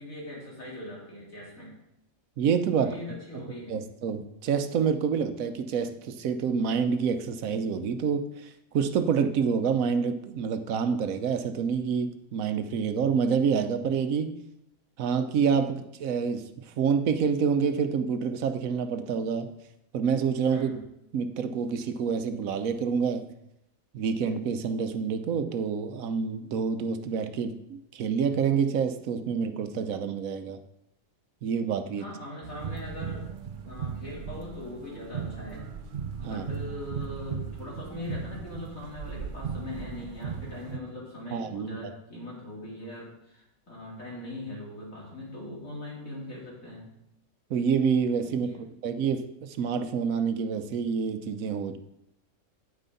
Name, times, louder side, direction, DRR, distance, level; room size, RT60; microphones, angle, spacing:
voice 1, 0.0-1.8 2.7-3.8 20.5-20.8 32.0-35.7 36.2-46.9 48.2-48.6, left 1 dB, 70° left, -5 dB, 4.0 m, -40 dB
voice 2, 2.4-3.0 3.7-14.3 15.0-19.5 19.9-20.7 21.1-23.3 23.9-30.6 31.4-32.0 36.2-36.4 41.3-41.8 47.5-48.5 48.8-51.8, right 6 dB, 75° right, 9 dB, 1.2 m, -27 dB
sound 1, 32.4-40.8, right 7 dB, 50° right, 0.7 m, -37 dB
9.2 x 9.2 x 4.0 m, 0.80 s
omnidirectional pair, 1.5 m